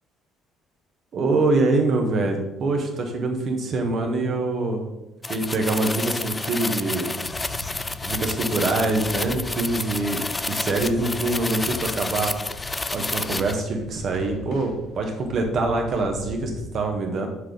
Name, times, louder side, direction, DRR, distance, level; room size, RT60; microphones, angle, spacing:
voice 1, 1.1-4.9 5.3-7.2 8.0-12.4 12.9-17.3, right 2 dB, 50° right, 3 dB, 1.3 m, -24 dB
sound 1, 5.2-13.6, left 3 dB, 20° left, 0.4 m, -30 dB
sound 2, 7.2-16.7, left 2 dB, 65° left, 0.9 m, -40 dB
6.5 x 3.8 x 4.9 m, 0.93 s
hypercardioid pair, 55°, 0 cm